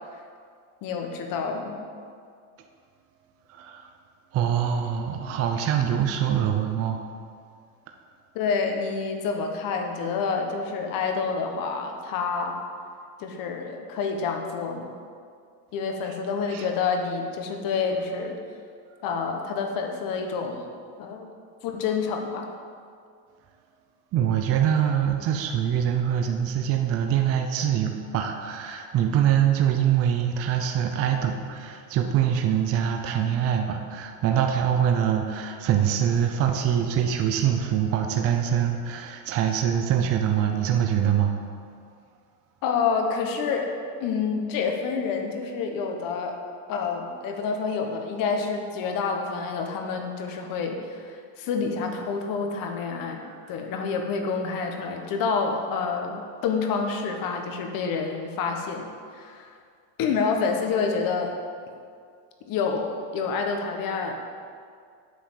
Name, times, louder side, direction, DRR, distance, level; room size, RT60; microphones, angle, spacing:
voice 1, 0.8-1.8 8.3-12.6 13.2-14.9 15.7-18.4 19.0-20.7 21.0-21.3 21.6-22.5 42.6-43.7 44.0-46.4 46.7-53.2 53.5-59.5 60.0-61.3 62.4-64.1, left 5 dB, 45° left, 4 dB, 1.2 m, -28 dB
voice 2, 3.5-3.8 4.3-7.0 16.5-16.7 24.1-41.3, right 9 dB, 30° right, 3 dB, 0.6 m, -24 dB
8.4 x 5.7 x 7.4 m, 2.2 s
cardioid pair, 155°, 48 cm